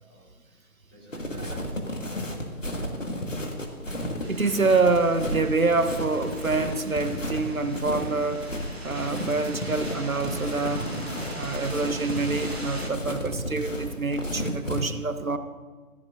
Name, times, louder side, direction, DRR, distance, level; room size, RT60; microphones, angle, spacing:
voice 1, 0.0-2.3, equal, 20° left, -8 dB, 2.7 m, -54 dB
sound 1, 1.1-14.8, left 1 dB, 55° left, 1.8 m, -33 dB
voice 2, 3.9-8.4 8.8-10.9 11.3-15.4, right 3 dB, 65° right, 9 dB, 1.0 m, -26 dB
sound 2, 4.2-12.9, right 1 dB, 40° right, 1.8 m, -41 dB
15.0 x 14.0 x 2.6 m, 1.4 s
figure-of-eight pair, 170°, 45 cm